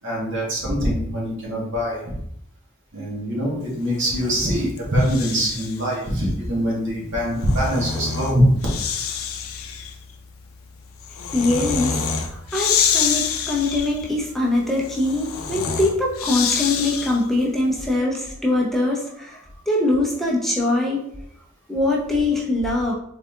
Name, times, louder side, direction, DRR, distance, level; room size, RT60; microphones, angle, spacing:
voice 1, 0.0-2.0 2.9-8.5, equal, 60° right, -4 dB, 1.8 m, -23 dB
Breathing, 3.9-5.9 7.1-17.4, left 6 dB, 75° left, 0.5 m, -27 dB
voice 2, 11.3-19.4 19.6-21.0 21.7-22.9, left 2 dB, ahead, -4 dB, 0.7 m, -22 dB
3.9 x 3.7 x 3.6 m, 0.74 s
head